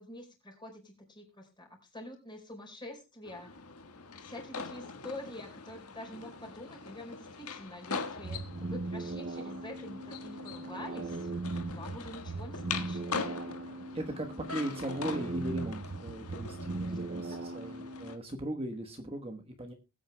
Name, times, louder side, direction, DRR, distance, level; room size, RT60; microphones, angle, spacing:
voice 1, 0.0-3.5 4.2-13.2 16.9-17.0 17.3-17.4, left 1 dB, 20° left, 1 dB, 4.8 m, -46 dB
sound 1, 3.2-18.2, left 5 dB, 85° left, 1.5 m, -42 dB
sound 2, 8.2-18.1, right 2 dB, 50° right, 0.6 m, -39 dB
voice 2, 13.9-19.7, right 1 dB, 25° right, 4 dB, 1.2 m, -38 dB
21.0 x 9.0 x 2.2 m, 0.28 s
head